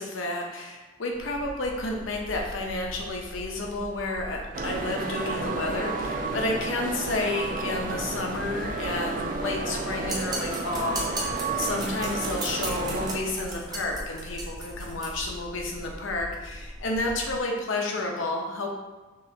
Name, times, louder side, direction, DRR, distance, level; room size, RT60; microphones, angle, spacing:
voice 1, 0.0-18.7, left 2 dB, 85° left, 1 dB, 0.7 m, -31 dB
sound 1, 1.1-17.4, equal, 20° left, 0.6 m, -42 dB
sound 2, 4.5-13.2, right 3 dB, 45° right, 0.4 m, -32 dB
sound 3, 10.1-15.1, right 2 dB, 20° right, 0.8 m, -35 dB
5.4 x 2.9 x 2.8 m, 1.2 s
head